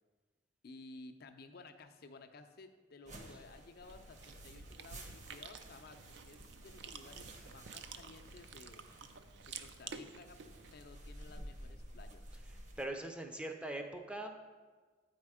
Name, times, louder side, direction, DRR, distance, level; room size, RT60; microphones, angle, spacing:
voice 1, 0.6-8.8 9.5-10.4 10.7-12.2, left 3 dB, 55° left, 7 dB, 0.5 m, -55 dB
sound 1, 3.0-12.9, right 1 dB, 40° right, 0.9 m, -53 dB
Chewing mastication, 3.8-10.7, right 6 dB, 60° right, 0.4 m, -51 dB
voice 2, 12.8-14.3, right 1 dB, 5° right, 4 dB, 0.5 m, -41 dB
8.9 x 4.3 x 4.9 m, 1.4 s
head